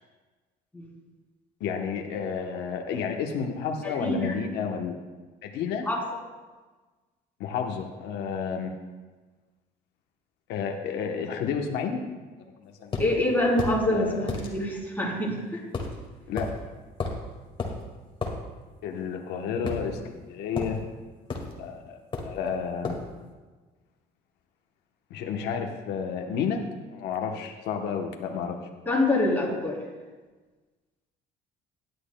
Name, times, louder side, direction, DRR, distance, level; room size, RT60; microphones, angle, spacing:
voice 1, 1.6-4.9 5.4-5.9 7.4-8.7 10.5-12.0 12.6-12.9 13.9-14.3 16.3-16.5 18.8-20.8 21.6-23.0 25.1-26.6 26.9-28.6, left 6 dB, 85° left, 3 dB, 1.0 m, -31 dB
voice 2, 4.0-4.4 5.9-6.0 13.0-15.6 28.9-29.8, left 1 dB, 10° left, -4 dB, 3.4 m, -25 dB
sound 1, 12.9-13.1 13.6-13.8 14.3-14.5 15.7-16.0 16.4-16.5 17.0-17.2 17.6-17.8 18.2-18.4 19.7-20.2 20.6-20.8 21.3-21.5 22.1-22.4 22.8-23.1, left 3 dB, 30° left, 1.9 m, -31 dB
16.5 x 11.0 x 2.2 m, 1.3 s
cardioid pair, 110°, 17 cm